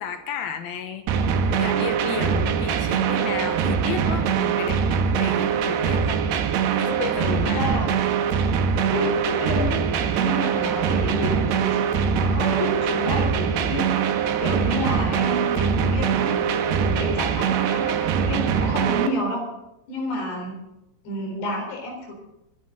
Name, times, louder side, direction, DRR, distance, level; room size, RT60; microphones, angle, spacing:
voice 1, 0.0-6.2 6.8-7.6, left 7 dB, 70° left, 7 dB, 2.8 m, -33 dB
sound 1, 1.1-19.1, right 7 dB, 85° right, 3.2 m, -23 dB
voice 2, 7.4-7.9 8.9-13.9 14.4-16.4 16.8-19.4 19.9-20.6 21.1-22.1, left 1 dB, 90° left, 1 dB, 6.0 m, -29 dB
25.0 x 12.0 x 3.8 m, 0.89 s
omnidirectional pair, 4.7 m